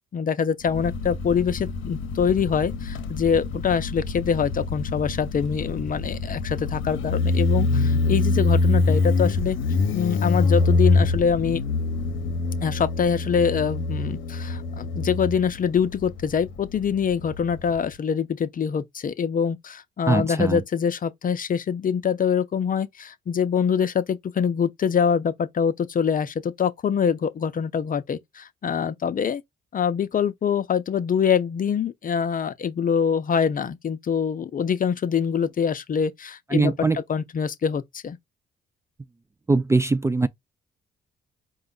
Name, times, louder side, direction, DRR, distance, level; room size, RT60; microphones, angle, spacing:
voice 1, 0.1-9.6 9.9-11.6 12.6-29.4 29.7-38.2, left 7 dB, 45° left, 0.6 m, -24 dB
Motorcycle, 0.7-17.9, left 3 dB, 80° left, 0.8 m, -25 dB
voice 2, 20.1-20.6 36.5-37.0 39.5-40.3, right 3 dB, 15° right, 0.4 m, -21 dB
4.7 x 2.2 x 3.9 m
cardioid pair, 90°, 20 cm